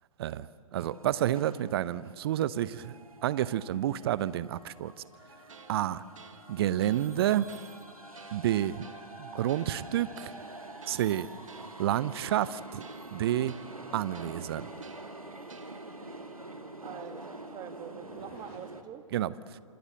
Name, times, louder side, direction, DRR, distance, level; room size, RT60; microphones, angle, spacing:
voice 1, 0.2-2.9 3.2-4.9 5.7-6.0 6.5-7.5 8.3-8.9 9.2-10.4 10.9-11.3 11.8-12.8 13.1-13.6 13.9-14.7 19.1-19.6, right 12 dB, 45° right, 18 dB, 0.8 m, -29 dB
sound 1, 0.7-18.8, right 2 dB, 90° right, 1.8 m, -47 dB
sound 2, 3.5-18.6, left 2 dB, 45° left, 8.0 m, -55 dB
sound 3, 5.5-16.1, right 6 dB, 70° right, 1.8 m, -55 dB
voice 2, 16.8-19.1, right 9 dB, 25° right, 8 dB, 2.0 m, -45 dB
27.0 x 27.0 x 7.6 m, 2.1 s
figure-of-eight pair, 115°, 18 cm